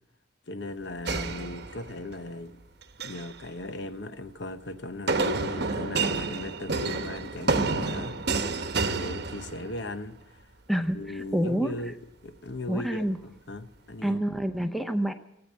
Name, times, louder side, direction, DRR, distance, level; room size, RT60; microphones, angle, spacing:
voice 1, 0.5-2.6 3.0-10.4 10.9-12.0 12.2-14.2, left 2 dB, 60° left, 0.9 m, -38 dB
sound 1, 1.1-2.1 2.8-3.3 5.1-9.9, right 3 dB, 55° right, 1.0 m, -29 dB
voice 2, 10.7-11.7 12.7-13.2 14.0-15.1, right 1 dB, ahead, 0.7 m, -27 dB
17.0 x 8.9 x 9.7 m
head